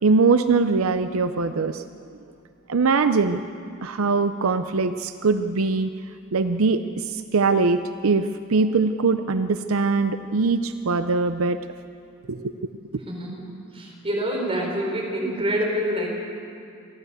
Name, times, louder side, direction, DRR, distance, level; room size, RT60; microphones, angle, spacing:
voice 1, 0.0-1.8 2.7-3.4 3.7-5.9 6.3-11.6 12.3-12.5, right 4 dB, 85° right, 10 dB, 0.6 m, -22 dB
voice 2, 13.1-13.5 13.7-16.1, equal, 30° right, -2 dB, 5.0 m, -26 dB
28.5 x 12.5 x 8.1 m, 2.4 s
head